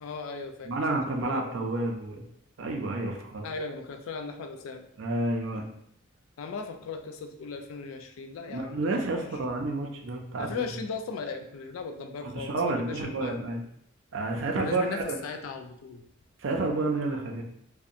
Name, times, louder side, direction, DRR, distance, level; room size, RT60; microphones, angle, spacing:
voice 1, 0.0-1.5 3.4-4.9 6.4-8.8 9.2-9.3 10.4-13.4 14.5-16.0, left 4 dB, 80° left, 5 dB, 0.3 m, -37 dB
voice 2, 0.6-2.2 2.6-3.5 5.0-5.7 8.5-10.7 12.2-13.6 14.1-15.2 16.4-17.4, right 2 dB, 65° right, 1 dB, 0.5 m, -30 dB
2.7 x 2.1 x 2.4 m, 0.69 s
head